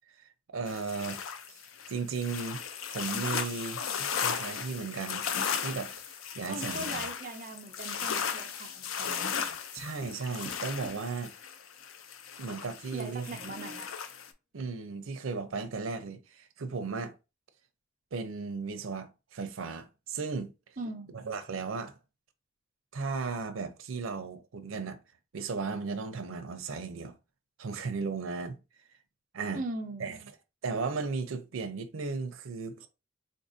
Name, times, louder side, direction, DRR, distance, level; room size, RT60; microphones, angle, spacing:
voice 1, 0.5-1.2 1.9-2.6 2.9-3.8 4.2-5.2 5.6-7.1 9.7-11.3 12.4-13.4 14.5-17.1 18.1-20.5 21.1-21.9 22.9-25.0 25.3-27.2 27.6-28.6 29.3-29.6 30.0-30.2 30.6-32.9, right 4 dB, 90° right, 0.5 m, -35 dB
sound 1, 0.7-14.3, left 7 dB, 85° left, 0.5 m, -36 dB
voice 2, 6.5-9.6 12.9-13.9 20.8-21.1 29.5-30.1, right 2 dB, 40° right, 0.5 m, -40 dB
Tap, 9.5-11.2 13.2-13.9, left 1 dB, ahead, 0.7 m, -50 dB
3.8 x 2.6 x 2.5 m
head